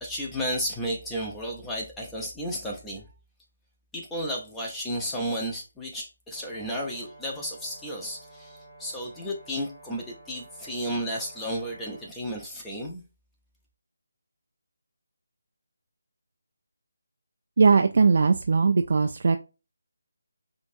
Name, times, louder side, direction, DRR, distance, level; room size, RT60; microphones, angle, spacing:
voice 1, 0.0-3.1 3.9-13.0, equal, 5° left, 0.6 m, -33 dB
Brass instrument, 6.3-12.1, right 2 dB, 45° left, 1.9 m, -51 dB
voice 2, 17.6-19.4, right 4 dB, 50° right, 0.3 m, -20 dB
5.1 x 2.6 x 2.5 m
figure-of-eight pair, 155°, 0 cm